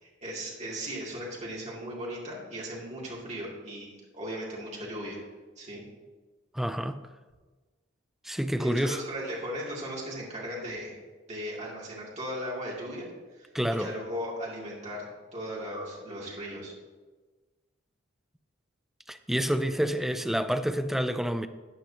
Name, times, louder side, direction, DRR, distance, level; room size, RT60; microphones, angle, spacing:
voice 1, 0.0-5.2 5.6-5.8 8.6-10.9 11.3-16.7, equal, 35° right, 2.7 m, -37 dB
voice 2, 6.5-7.0 8.2-9.0 13.5-13.9 19.1-21.5, equal, ahead, 0.3 m, -28 dB
14.0 x 8.8 x 2.9 m
head